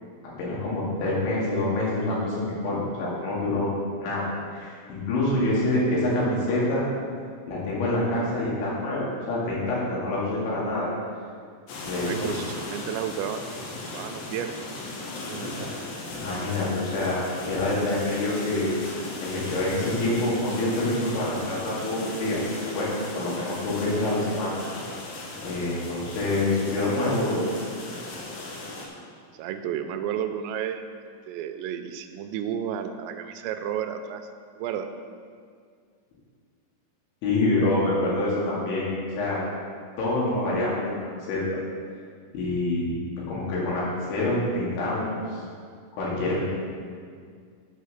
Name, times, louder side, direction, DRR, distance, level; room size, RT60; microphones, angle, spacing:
voice 1, 0.4-3.7 4.0-6.9 7.5-10.9 11.8-12.3 16.1-18.7 19.2-22.4 22.7-24.5 25.4-27.4 37.2-38.9 39.1-39.4 40.0-40.9 41.3-41.4 42.3-42.9 43.3-45.4 46.0-46.4, left 2 dB, 90° left, -6 dB, 4.8 m, -26 dB
sound 1, 11.7-28.9, left 2 dB, 65° left, 2.9 m, -37 dB
voice 2, 12.0-14.6 15.2-15.7 29.4-30.9 31.3-34.2 34.5-34.9, right 9 dB, 85° right, 8 dB, 2.8 m, -32 dB
8.9 x 6.6 x 6.5 m, 2.1 s
omnidirectional pair, 5.1 m